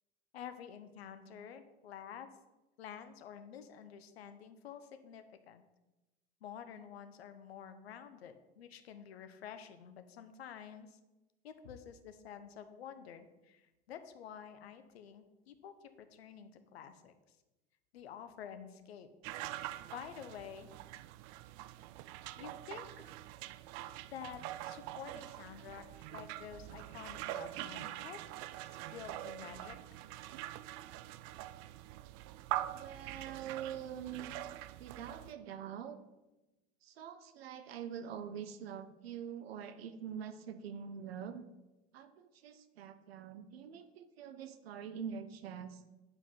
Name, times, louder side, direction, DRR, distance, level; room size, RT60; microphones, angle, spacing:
voice 1, 0.3-2.3 2.8-5.6 6.4-11.0 11.4-17.1 17.9-19.1 19.9-20.7 22.4-23.1 24.1-28.4 28.8-30.0, left 8 dB, 80° left, 10 dB, 0.8 m, -50 dB
sound 1, 19.2-35.3, right 14 dB, 55° right, 0.5 m, -44 dB
voice 2, 32.7-34.3 34.8-36.0 36.8-41.4 41.9-45.8, right 8 dB, 75° right, 10 dB, 0.8 m, -45 dB
9.9 x 4.9 x 5.4 m, 1.0 s
hypercardioid pair, 70°, 31 cm